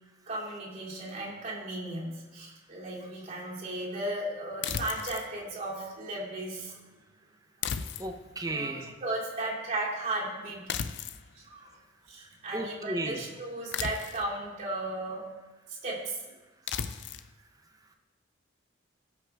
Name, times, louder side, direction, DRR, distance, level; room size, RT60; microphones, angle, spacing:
voice 1, 0.3-6.8 8.5-10.6 11.3-11.7 12.1-15.3 15.7-16.3, right 2 dB, 40° right, -6 dB, 3.2 m, -35 dB
sound 1, 4.6-5.3 7.6-8.4 10.7-11.3 13.7-14.4 16.7-17.3, left 7 dB, 65° left, 0.5 m, -35 dB
voice 2, 8.0-8.9 12.2-13.3, right 1 dB, 20° right, 5 dB, 0.9 m, -35 dB
17.5 x 6.0 x 3.6 m, 1.2 s
head